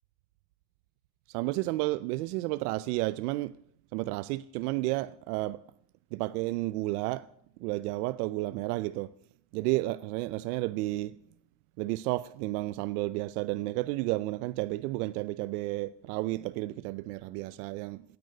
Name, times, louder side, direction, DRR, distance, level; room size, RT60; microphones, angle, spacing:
voice 1, 1.3-3.5 3.9-5.6 6.1-7.2 7.6-9.1 9.5-11.1 11.8-18.0, right 19 dB, 85° right, 0.7 m, -32 dB
14.5 x 9.7 x 9.5 m
supercardioid pair, 120°, 45 cm